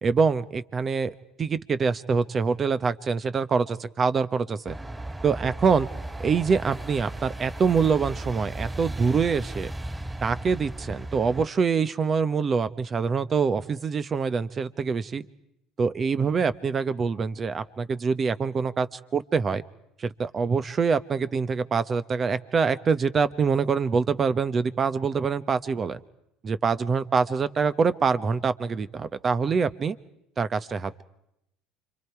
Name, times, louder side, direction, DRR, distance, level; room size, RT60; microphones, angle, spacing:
voice 1, 0.0-4.8 5.2-5.9 6.2-9.7 10.2-15.3 15.8-19.6 20.0-26.0 26.4-30.0 30.4-31.0, right 5 dB, 35° right, 14 dB, 1.0 m, -25 dB
sound 1, 4.6-11.5, right 1 dB, 15° right, 3.5 m, -36 dB
29.0 x 24.5 x 4.7 m, 0.80 s
hypercardioid pair, 75°, 0 cm